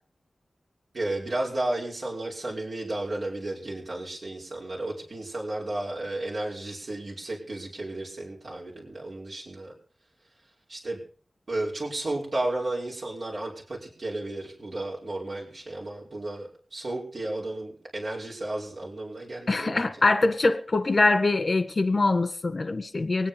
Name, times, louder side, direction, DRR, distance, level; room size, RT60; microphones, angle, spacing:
voice 1, 0.9-9.7 10.7-11.0 11.5-19.9, right 2 dB, 60° right, -4 dB, 5.5 m, -33 dB
voice 2, 19.5-23.3, left 3 dB, 45° left, 10 dB, 1.7 m, -23 dB
23.5 x 9.5 x 5.3 m, 0.43 s
wide cardioid pair, 70°, 0 cm